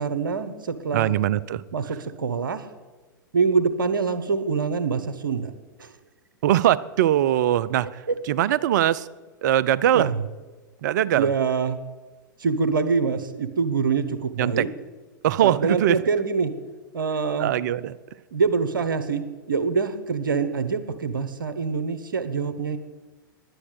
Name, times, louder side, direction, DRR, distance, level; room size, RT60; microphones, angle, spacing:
voice 1, 0.0-1.1 1.7-2.7 3.3-5.5 5.8-5.9 8.1-8.2 9.9-10.2 11.1-11.8 12.4-14.7 15.4-16.5 16.9-17.5 18.3-22.8, right 5 dB, 75° right, 10 dB, 1.1 m, -25 dB
voice 2, 0.9-1.6 6.4-9.1 9.4-10.1 10.8-11.3 14.4-14.7 15.2-16.0 17.4-18.0, right 12 dB, 60° right, 18 dB, 0.5 m, -21 dB
11.0 x 9.8 x 6.5 m, 1.2 s
figure-of-eight pair, 95°, 11 cm